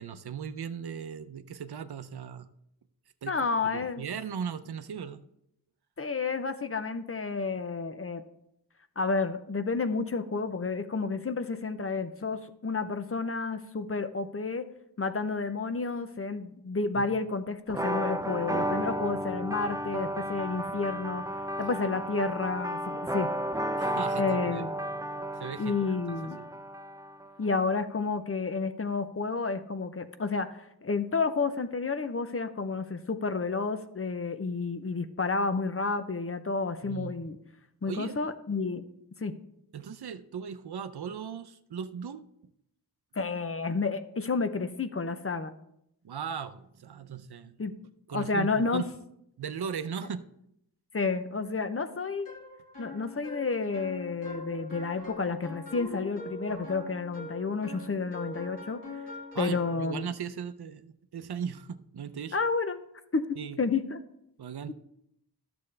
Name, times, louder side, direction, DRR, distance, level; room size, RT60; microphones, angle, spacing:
voice 1, 0.0-2.5 3.2-5.2 17.0-17.1 21.6-21.8 23.8-24.7 25.0-26.5 36.8-37.1 37.8-38.2 39.7-42.2 46.0-47.6 48.1-48.8 49.4-50.2 59.3-62.4 63.4-63.6 64.4-64.7, right 7 dB, 70° right, 11 dB, 0.6 m, -38 dB
voice 2, 3.3-4.0 6.0-8.2 9.0-14.7 15.0-21.2 21.6-23.3 24.2-24.7 25.6-26.4 27.4-37.4 37.8-38.9 39.2-39.4 43.2-45.5 47.6-47.7 48.1-48.8 50.9-52.3 52.8-58.8 59.4-60.1 62.3-62.8 63.1-63.3 63.6-64.0, left 4 dB, 35° left, 10 dB, 0.6 m, -30 dB
sound 1, 17.7-27.3, equal, 10° right, 0.4 m, -33 dB
sound 2, 52.3-59.9, left 2 dB, 55° left, 2.1 m, -43 dB
11.5 x 6.9 x 3.3 m, 0.77 s
wide cardioid pair, 75°, 40 cm